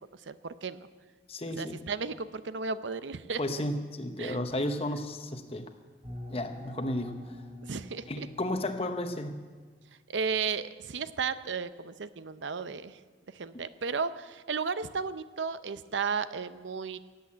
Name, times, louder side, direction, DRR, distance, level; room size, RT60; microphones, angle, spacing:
voice 1, 0.3-0.8 1.6-3.4 4.2-4.4 7.6-8.3 10.1-13.0 13.3-17.0, right 5 dB, 90° right, 13 dB, 0.7 m, -34 dB
voice 2, 1.3-1.9 3.4-5.7 6.3-7.3 8.1-9.4, left 1 dB, 35° left, 7 dB, 0.9 m, -33 dB
sound 1, 6.0-9.5, left 1 dB, 30° right, 3.9 m, -45 dB
17.0 x 8.2 x 8.5 m, 1.4 s
head